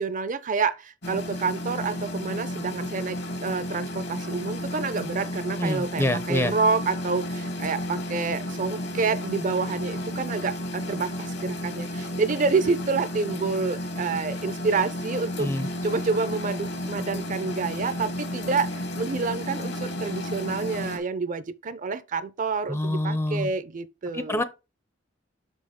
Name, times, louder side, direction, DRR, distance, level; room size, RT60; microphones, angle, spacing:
voice 1, 0.0-15.5 15.8-24.4, right 4 dB, 45° right, 0.5 m, -28 dB
sound 1, 1.0-21.0, left 1 dB, 60° left, 1.1 m, -32 dB
voice 2, 5.6-6.5 15.4-15.7 22.7-23.5 24.1-24.4, left 1 dB, 15° left, 0.5 m, -26 dB
5.8 x 5.4 x 3.6 m
head